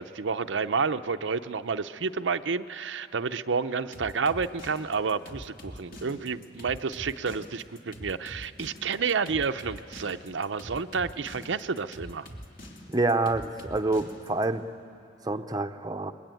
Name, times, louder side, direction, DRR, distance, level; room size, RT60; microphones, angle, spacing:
voice 1, 0.0-12.3, right 5 dB, 85° right, 8 dB, 0.7 m, -30 dB
sound 1, 3.9-14.5, equal, 50° left, 2.8 m, -44 dB
voice 2, 12.9-14.6 15.2-16.1, right 2 dB, 20° right, 6 dB, 0.7 m, -27 dB
29.0 x 22.0 x 9.2 m, 2.5 s
head